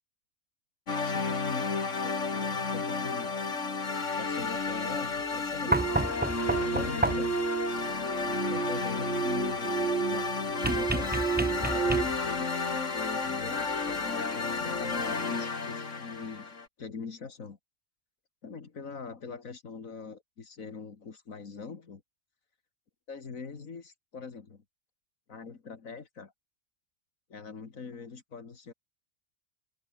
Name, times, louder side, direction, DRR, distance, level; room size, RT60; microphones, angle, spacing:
sound 1, 0.9-16.7, left 4 dB, 65° left, 2.6 m, -32 dB
voice 1, 1.0-3.4 4.2-6.2 6.6-7.4 8.3-10.3 10.6-11.3 11.6-17.6 18.4-22.0 23.1-24.6 25.3-26.3 27.3-28.7, left 5 dB, 80° left, 2.5 m, -43 dB
sound 2, 5.7-7.5 10.6-12.4 13.9-14.0, right 2 dB, 10° right, 0.5 m, -30 dB
sound 3, 5.7-12.0, right 7 dB, 50° right, 1.1 m, -32 dB
omnidirectional pair, 1.4 m